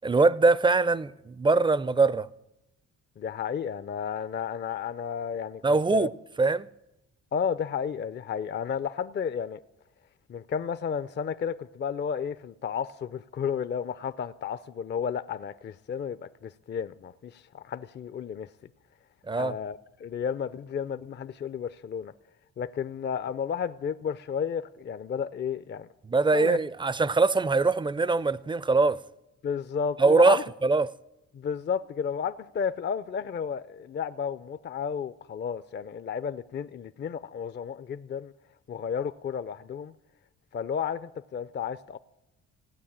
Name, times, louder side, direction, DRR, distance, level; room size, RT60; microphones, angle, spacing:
voice 1, 0.0-2.3 5.6-6.1 6.4-6.7 19.3-19.5 26.0-29.0 30.0-30.9, right 3 dB, 15° right, 0.4 m, -22 dB
voice 2, 3.2-6.1 7.3-9.6 10.3-18.5 19.3-22.1 22.6-25.9 26.3-26.6 29.4-30.4 31.3-38.3 38.7-39.9 40.5-42.0, left 7 dB, 35° left, 0.5 m, -32 dB
16.5 x 9.2 x 8.7 m
cardioid pair, 90°, 30 cm